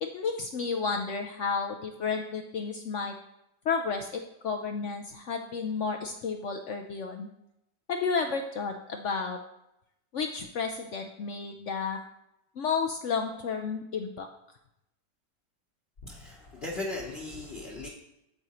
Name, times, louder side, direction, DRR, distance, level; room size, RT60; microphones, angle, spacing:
voice 1, 0.0-3.1 3.6-7.3 7.9-9.4 10.1-12.0 12.6-14.3, left 5 dB, 65° left, 4 dB, 0.7 m, -32 dB
voice 2, 16.0-17.9, left 2 dB, 40° left, -3 dB, 1.2 m, -37 dB
8.7 x 7.9 x 3.0 m, 0.84 s
omnidirectional pair, 1.8 m